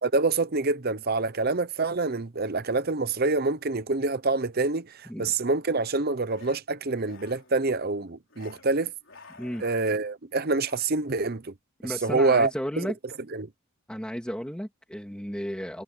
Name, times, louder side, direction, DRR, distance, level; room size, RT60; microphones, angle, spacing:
voice 1, 0.0-8.9 9.6-11.5 11.8-12.5 12.8-12.9 13.3-13.5, right 3 dB, 45° right, 0.8 m, -26 dB
sound 1, 6.3-6.6 6.9-7.6 8.3-8.7 9.0-10.1 10.6-10.8, left 4 dB, 55° left, 5.5 m, -51 dB
voice 2, 11.8-12.9 13.9-15.8, equal, 5° left, 3.0 m, -33 dB
head